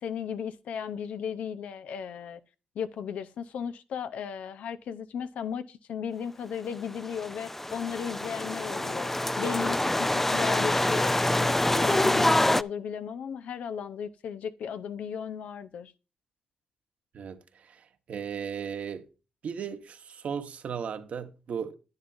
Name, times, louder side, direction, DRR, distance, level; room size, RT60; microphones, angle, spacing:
voice 1, 0.0-2.4 2.7-15.9, left 7 dB, 90° left, 0.7 m, -35 dB
sound 1, 7.1-12.6, left 1 dB, 10° left, 0.4 m, -26 dB
voice 2, 17.1-19.1 19.4-21.8, right 7 dB, 75° right, 1.2 m, -36 dB
10.5 x 9.7 x 2.6 m
cardioid pair, 75°, 2 cm